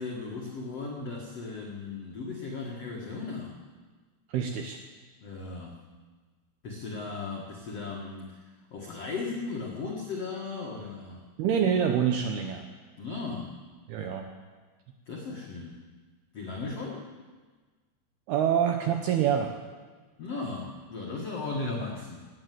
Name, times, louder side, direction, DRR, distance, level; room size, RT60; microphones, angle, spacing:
voice 1, 0.0-3.6 5.2-5.8 6.6-11.2 13.0-13.6 15.1-15.8 16.3-17.1 20.2-22.3, left 3 dB, 85° left, -2 dB, 1.3 m, -36 dB
voice 2, 4.3-4.8 11.4-12.6 13.9-14.3 18.3-19.5, right 8 dB, 80° right, 5 dB, 2.3 m, -26 dB
18.5 x 9.5 x 7.7 m, 1.4 s
omnidirectional pair, 5.6 m